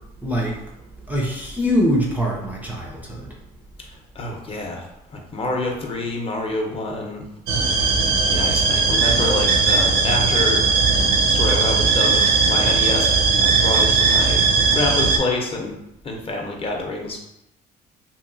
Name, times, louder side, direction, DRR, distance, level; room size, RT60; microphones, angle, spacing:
voice 1, 0.2-0.6 1.1-3.3, equal, 10° right, -2 dB, 0.4 m, -23 dB
voice 2, 4.1-7.2 8.3-10.6 11.2-14.4 14.7-15.8 16.0-17.2, left 2 dB, 35° left, 0 dB, 0.6 m, -27 dB
sound 1, 7.5-15.2, right 4 dB, 70° right, 0.6 m, -18 dB
2.8 x 2.6 x 2.5 m, 0.82 s
cardioid pair, 110°, 17 cm